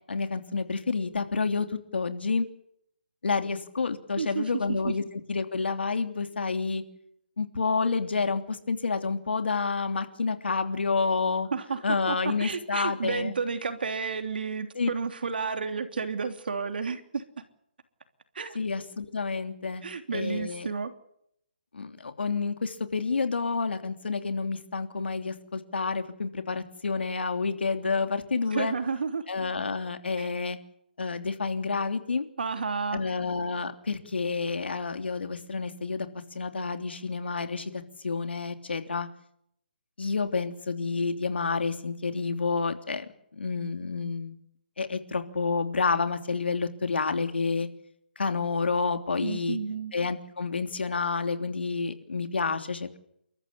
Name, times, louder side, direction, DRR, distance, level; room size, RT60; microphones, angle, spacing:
voice 1, 0.1-2.5 3.2-5.0 5.3-6.8 7.4-11.5 11.8-13.3 14.7-14.9 18.5-19.8 20.1-20.7 21.7-28.7 29.3-30.6 31.0-32.2 32.9-36.1 36.3-37.7 38.0-39.1 40.0-43.0 43.3-44.4 44.8-47.7 48.2-49.6 49.9-53.0, left 4 dB, 80° left, 8 dB, 3.2 m, -29 dB
voice 2, 4.2-4.9 11.5-17.2 18.3-18.6 19.8-20.9 28.5-29.2 30.2-30.3 32.4-33.0 49.2-49.9, right 5 dB, 60° right, 8 dB, 3.2 m, -31 dB
29.5 x 14.0 x 8.6 m, 0.74 s
hypercardioid pair, 170°, 6 cm